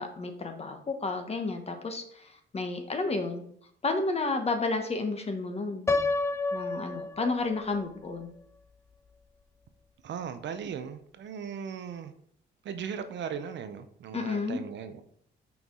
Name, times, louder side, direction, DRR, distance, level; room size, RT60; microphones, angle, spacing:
voice 1, 0.0-2.3 2.5-3.4 3.8-5.9 6.5-8.3 14.1-14.6, left 3 dB, 30° left, 6 dB, 1.0 m, -31 dB
Piano, 5.9-7.8, left 3 dB, 15° left, 0.4 m, -29 dB
voice 2, 10.0-12.1 12.6-15.0, right 7 dB, 65° right, 9 dB, 0.7 m, -38 dB
5.5 x 4.6 x 3.8 m, 0.64 s
cardioid pair, 90°, 20 cm